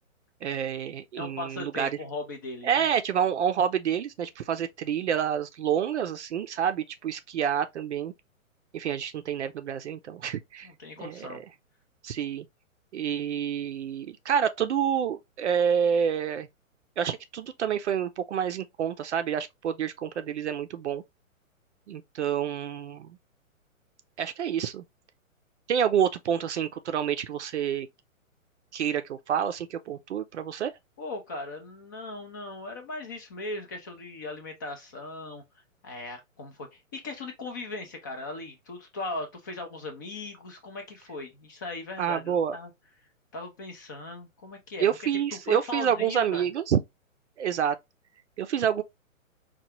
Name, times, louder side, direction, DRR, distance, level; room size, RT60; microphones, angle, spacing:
voice 1, 0.4-1.9 2.6-8.1 8.7-10.7 11.0-11.4 12.0-12.5 12.9-16.5 17.0-21.0 21.9-23.2 24.2-24.8 25.7-27.9 28.7-30.7 42.0-42.6 44.8-46.8 47.4-47.8 48.4-48.8, right 8 dB, 55° right, 0.6 m, -28 dB
voice 2, 1.1-2.9 10.6-11.4 31.0-35.4 35.8-42.7 43.3-44.9 45.5-46.4, left 2 dB, 15° left, 0.4 m, -38 dB
4.6 x 2.3 x 2.8 m
figure-of-eight pair, 125°, 41 cm